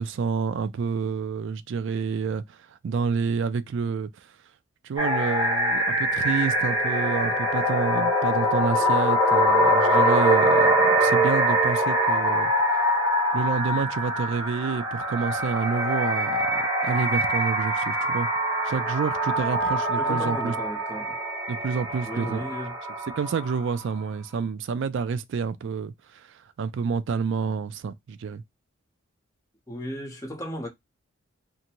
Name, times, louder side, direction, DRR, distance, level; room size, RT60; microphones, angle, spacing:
voice 1, 0.0-2.6 2.8-4.3 4.8-12.5 13.3-18.3 18.6-20.5 21.5-22.4 23.2-28.4, right 5 dB, 65° right, 0.3 m, -29 dB
sound 1, 5.0-23.8, equal, 15° right, 0.8 m, -23 dB
voice 2, 20.0-21.2 22.0-22.7 29.7-30.7, equal, 15° left, 0.9 m, -35 dB
2.6 x 2.2 x 2.8 m
head